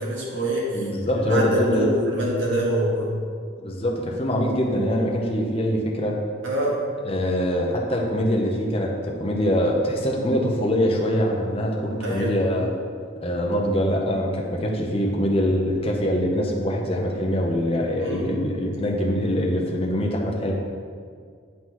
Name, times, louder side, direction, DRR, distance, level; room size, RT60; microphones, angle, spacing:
voice 1, 0.0-0.9 1.3-3.2 6.4-6.9 12.0-12.4 18.0-18.4, equal, 75° right, -4 dB, 1.5 m, -25 dB
voice 2, 0.7-1.9 3.6-6.2 7.0-12.7 13.2-20.5, equal, 30° left, -1 dB, 0.7 m, -23 dB
9.6 x 3.8 x 3.0 m, 2.1 s
head